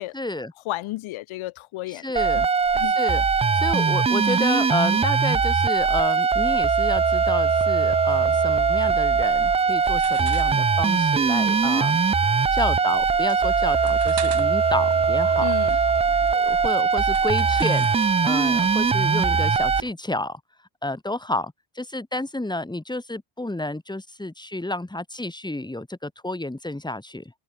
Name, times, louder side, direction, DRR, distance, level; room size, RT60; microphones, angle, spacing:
voice 1, 0.1-0.5 1.9-2.5 2.8-3.2 3.5-12.0 12.5-15.5 16.3-17.9 18.2-20.4 20.8-27.3, left 2 dB, 10° left, 5.8 m, -30 dB
voice 2, 0.6-2.0 2.7-3.0 15.4-15.8, left 17 dB, 75° left, 5.2 m, -32 dB
sound 1, 2.2-19.8, right 5 dB, 15° right, 0.4 m, -21 dB
sound 2, 8.1-19.9, right 9 dB, 55° right, 5.2 m, -44 dB
supercardioid pair, 80°, 48 cm